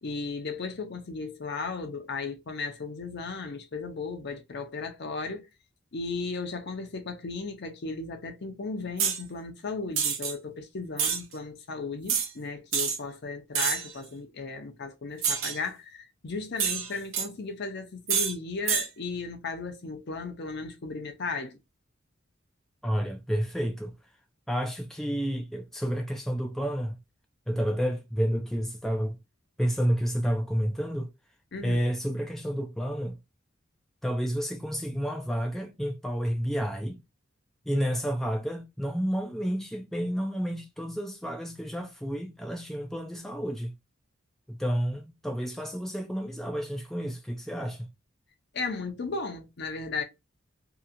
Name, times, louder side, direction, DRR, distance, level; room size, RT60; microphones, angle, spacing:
voice 1, 0.0-5.5 5.9-21.6 31.5-31.8 48.5-50.0, left 4 dB, 55° left, 0.6 m, -35 dB
sound 1, 9.0-9.2 10.0-10.3 11.0-11.2 12.1-12.3 12.7-13.0 13.5-13.9 15.2-15.6 16.6-17.3 18.1-18.3 18.7-18.9, right 7 dB, 80° right, 0.8 m, -27 dB
voice 2, 22.8-23.9 24.5-27.0 27.5-29.2 29.6-31.1 31.6-33.2 34.0-37.0 37.7-43.7 44.5-47.9, equal, ahead, 0.3 m, -30 dB
2.8 x 2.3 x 2.4 m
head